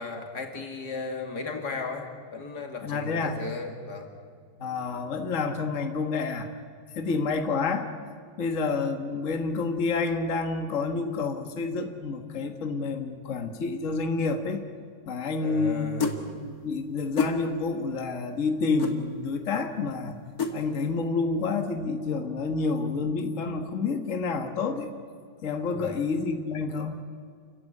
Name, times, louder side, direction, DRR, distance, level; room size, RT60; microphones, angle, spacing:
voice 1, 0.0-4.1 15.4-16.3 25.7-26.0, left 3 dB, 85° left, 4 dB, 3.0 m, -35 dB
voice 2, 2.8-3.4 4.6-6.5 7.0-7.9 8.4-14.6 15.1-15.9 16.3-20.2 20.5-24.9 25.4-27.0, left 4 dB, 50° left, 6 dB, 1.8 m, -29 dB
sound 1, 16.0-16.2 17.2-17.4 18.8-19.0 20.4-20.6, left 5 dB, 65° left, 2.4 m, -26 dB
29.5 x 15.0 x 10.0 m, 2.1 s
omnidirectional pair, 1.7 m